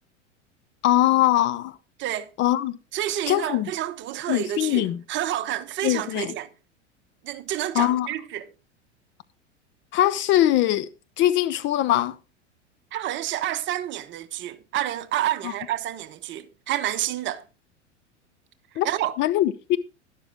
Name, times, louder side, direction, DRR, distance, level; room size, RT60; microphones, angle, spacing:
voice 1, 0.8-1.8 2.4-2.8 3.3-3.7 4.3-5.0 5.8-6.3 7.8-8.1 9.9-10.9 11.2-12.2 15.4-15.5 18.8-18.9 19.2-19.8, left 13 dB, 30° left, 0.6 m, -21 dB
voice 2, 2.0-2.3 2.9-6.5 7.2-8.5 12.9-17.4 18.8-19.2, right 12 dB, 30° right, 1.0 m, -29 dB
12.0 x 11.0 x 3.5 m
figure-of-eight pair, 85°, 36 cm